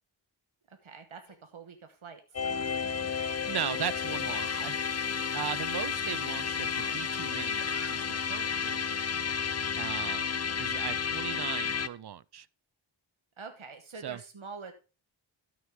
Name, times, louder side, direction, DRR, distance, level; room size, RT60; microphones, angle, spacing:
voice 1, 0.7-2.9 3.3-3.5 13.4-14.7, right 4 dB, 90° right, 1.3 m, -46 dB
Yell, 1.3-1.4 2.3-2.4 3.5-4.7 6.6-8.1, left 3 dB, 75° left, 2.3 m, -48 dB
sound 1, 2.3-11.9, left 6 dB, 35° left, 0.5 m, -32 dB
voice 2, 3.5-4.8 5.3-9.0 9.8-10.3 10.6-12.5 14.0-14.2, right 9 dB, 55° right, 0.5 m, -38 dB
13.0 x 6.1 x 3.7 m
wide cardioid pair, 60°, 47 cm